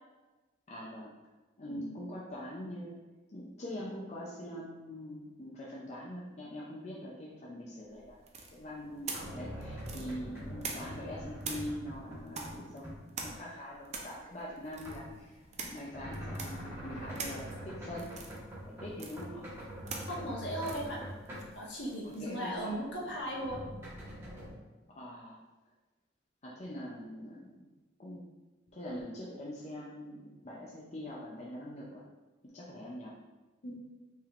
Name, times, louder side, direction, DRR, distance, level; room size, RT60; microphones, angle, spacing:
voice 1, 0.7-1.1 1.6-3.0 3.3-8.2 8.5-15.4 15.7-18.1 18.7-19.5 22.0-22.8 24.9-25.4 26.4-27.7 28.0-28.2 28.7-32.0 32.5-33.2, left 1 dB, 35° left, -5 dB, 0.5 m, -43 dB
sound 1, 8.3-11.1 11.4-22.4, right 4 dB, 35° right, 0.5 m, -45 dB
sound 2, 8.5-12.6 12.8-13.4 13.9-21.8 22.4-24.5, equal, 15° right, 1.3 m, -44 dB
voice 2, 20.1-21.0 21.6-23.6 33.6-33.7, equal, 65° left, -5 dB, 1.3 m, -37 dB
5.4 x 3.4 x 2.5 m, 1.2 s
head